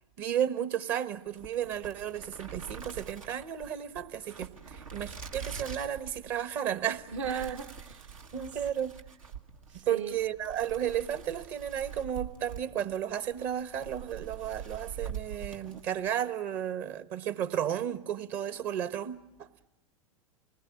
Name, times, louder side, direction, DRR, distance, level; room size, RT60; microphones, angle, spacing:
voice 1, 0.2-7.5 8.3-9.0 9.9-19.5, right 10 dB, 50° right, 1.4 m, -33 dB
sound 1, 1.3-16.2, right 7 dB, 90° right, 1.6 m, -45 dB
voice 2, 7.1-8.2 9.7-10.2, right 7 dB, 70° right, 1.7 m, -37 dB
26.5 x 20.0 x 8.5 m
hypercardioid pair, 90°, 17 cm